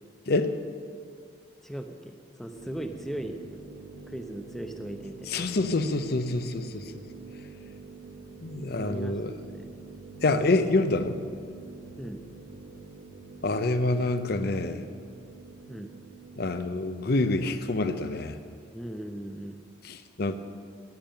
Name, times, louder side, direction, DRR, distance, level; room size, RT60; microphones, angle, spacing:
voice 1, 0.3-0.6 5.3-6.9 8.4-9.3 10.2-11.2 13.4-14.8 16.4-18.4 19.8-20.3, left 2 dB, 55° left, 9 dB, 0.6 m, -27 dB
voice 2, 1.6-3.4 4.1-5.4 8.8-9.2 9.5-9.8 12.0-12.2 15.7-15.9 18.7-19.6, right 1 dB, ahead, 5 dB, 0.6 m, -38 dB
sound 1, 2.5-16.5, right 3 dB, 85° right, 2.5 m, -46 dB
10.5 x 8.8 x 8.9 m, 2.2 s
head